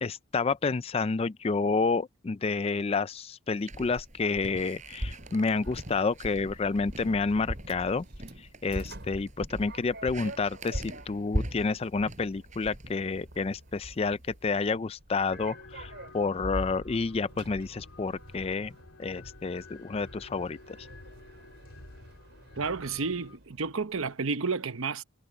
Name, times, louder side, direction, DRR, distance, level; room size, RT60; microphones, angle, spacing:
voice 1, 0.0-8.1 8.4-18.7 19.0-20.9, left 4 dB, 30° left, 0.4 m, -29 dB
sound 1, 3.6-13.5, equal, 35° right, 5.2 m, -39 dB
Sliding door, 4.5-24.1, right 1 dB, 55° right, 5.0 m, -48 dB
sound 2, 15.3-23.4, left 2 dB, 90° left, 3.1 m, -49 dB
voice 2, 22.6-25.0, right 4 dB, 75° right, 0.9 m, -31 dB
head